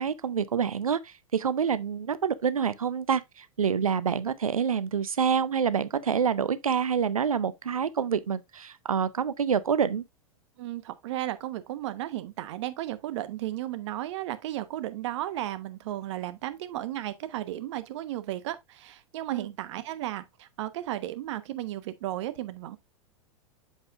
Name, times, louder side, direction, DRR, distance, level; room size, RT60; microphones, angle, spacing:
voice 1, 0.0-10.0 19.3-19.5, right 7 dB, 80° right, 0.6 m, -27 dB
voice 2, 10.6-22.8, right 14 dB, 55° right, 1.0 m, -34 dB
7.9 x 7.4 x 2.4 m
figure-of-eight pair, 95°, 18 cm